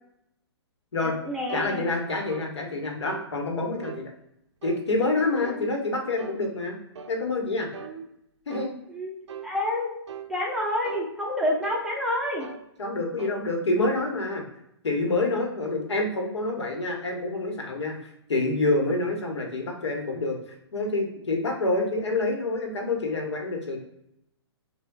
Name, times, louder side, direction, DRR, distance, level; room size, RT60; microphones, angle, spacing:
voice 1, 1.0-1.9 5.4-5.7 7.8-8.0 8.9-9.1 9.4-9.9 10.3-12.5 13.2-13.4, left 1 dB, 5° right, -3 dB, 0.5 m, -29 dB
voice 2, 1.5-4.1 4.6-6.8 7.1-7.7 8.5-8.7 12.8-14.4 14.8-20.4 20.7-23.8, left 2 dB, 90° left, 2 dB, 1.0 m, -27 dB
sound 1, 1.5-1.7 2.3-2.5 3.1-3.3 3.8-4.1 4.6-4.8 5.4-5.6 6.2-6.4 7.0-7.2 7.7-8.0 8.5-8.7 9.3-9.5 10.1-10.3 10.8-11.1 11.6-11.9 12.4-12.7 13.2-13.4, right 8 dB, 90° right, 0.4 m, -39 dB
5.7 x 2.2 x 2.3 m, 0.80 s
hypercardioid pair, 145°, 14 cm